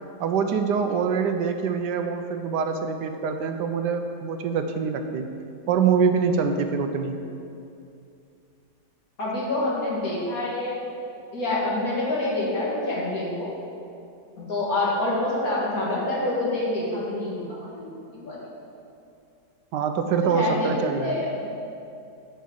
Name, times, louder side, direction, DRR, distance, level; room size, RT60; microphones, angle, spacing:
voice 1, 0.2-5.4 5.7-7.2 19.7-21.2, right 6 dB, 80° right, 7 dB, 1.2 m, -25 dB
voice 2, 9.2-10.8 11.3-13.5 14.4-18.4 20.2-20.7 21.0-21.5, left 2 dB, 55° left, -6 dB, 2.4 m, -27 dB
8.4 x 5.6 x 7.4 m, 2.6 s
omnidirectional pair, 1.9 m